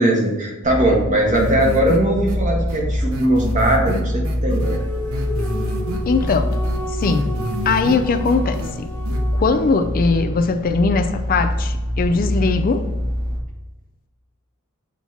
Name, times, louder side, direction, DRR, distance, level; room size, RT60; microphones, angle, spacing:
voice 1, 0.0-4.8, right 1 dB, 35° right, 1.5 m, -19 dB
sound 1, 0.6-13.4, equal, 50° right, 1.8 m, -25 dB
sound 2, 1.3-2.0 2.3-2.4 2.7-2.8 3.1-4.8 5.1-6.0 6.3-8.0 8.2-8.7 9.0-9.2, equal, 70° right, 0.9 m, -28 dB
sound 3, 4.6-9.9, left 1 dB, 10° left, 1.3 m, -33 dB
voice 2, 6.1-6.6 6.9-7.3 7.6-8.9 9.3-12.8, left 4 dB, 40° left, 0.4 m, -20 dB
7.2 x 3.0 x 5.5 m
head